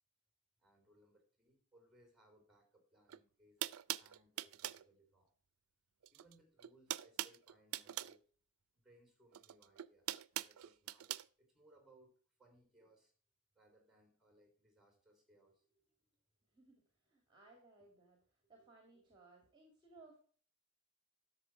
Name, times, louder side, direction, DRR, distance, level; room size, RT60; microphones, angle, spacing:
voice 1, 0.6-5.3 6.1-8.2 8.8-12.1 12.4-13.1 13.5-16.1 17.3-17.4 18.5-18.7, right 1 dB, ahead, 4 dB, 3.6 m, -69 dB
sound 1, 3.1-3.2 3.6-4.9 6.0-6.3 6.6-8.2 9.3-11.3, right 14 dB, 75° right, 0.4 m, -42 dB
voice 2, 16.5-18.2 18.5-20.2, right 3 dB, 20° right, 2 dB, 2.1 m, -63 dB
11.5 x 6.8 x 4.6 m, 0.43 s
head